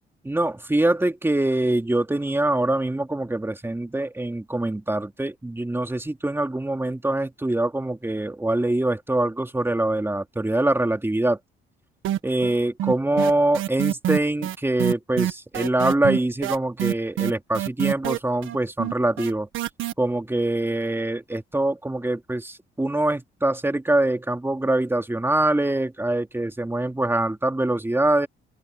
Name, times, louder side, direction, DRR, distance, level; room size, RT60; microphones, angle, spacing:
voice 1, 0.2-11.4 12.2-19.5 20.0-28.3, right 1 dB, 10° right, 2.7 m, -24 dB
sound 1, 12.0-12.5 12.8-19.9, right 12 dB, 85° right, 1.6 m, -26 dB
open air
cardioid pair, 90°, 20 cm